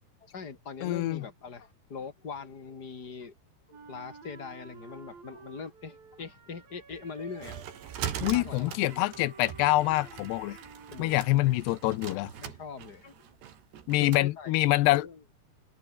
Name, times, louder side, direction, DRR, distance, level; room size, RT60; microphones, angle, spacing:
voice 1, 0.2-3.3 3.7-7.6 8.3-9.1 10.9-11.6 12.4-13.2 14.0-15.2, left 5 dB, 25° left, 3.5 m, -42 dB
voice 2, 0.8-1.2 8.2-10.6 11.0-12.3 13.9-15.1, left 17 dB, 85° left, 2.9 m, -25 dB
Wind instrument woodwind instrument, 3.7-11.9, right 5 dB, 55° right, 7.3 m, -52 dB
sound 1, 6.9-14.3, right 9 dB, 80° right, 4.8 m, -41 dB
omnidirectional pair, 4.8 m